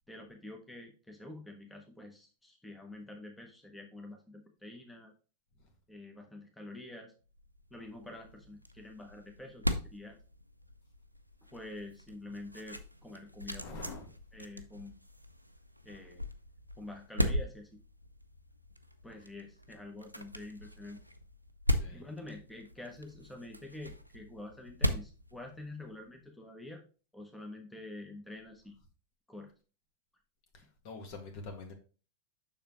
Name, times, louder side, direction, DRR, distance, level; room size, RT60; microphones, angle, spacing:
voice 1, 0.1-5.1 5.9-7.1 7.7-10.2 11.5-13.7 14.3-15.0 15.8-16.2 16.8-17.7 19.0-21.0 21.9-26.8 27.1-28.7 29.3-29.5, left 2 dB, 5° left, 1.1 m, -47 dB
sound 1, 7.3-26.1, equal, 90° right, 0.5 m, -39 dB
voice 2, 13.6-14.2 21.8-22.0 30.5-31.7, left 3 dB, 45° left, 1.7 m, -45 dB
7.2 x 5.8 x 3.0 m
figure-of-eight pair, 90°, 0 cm